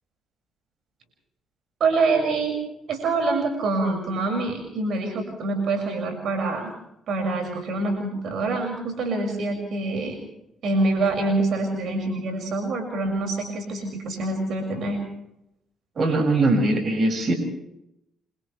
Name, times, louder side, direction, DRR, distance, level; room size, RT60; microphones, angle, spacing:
voice 1, 1.8-2.5 2.9-6.7 7.1-10.1 10.6-15.0, right 3 dB, 65° right, 3 dB, 6.4 m, -25 dB
voice 2, 16.0-17.3, right 2 dB, 50° right, 4 dB, 6.8 m, -21 dB
29.5 x 26.5 x 3.4 m, 0.82 s
cardioid pair, 80°, 0 cm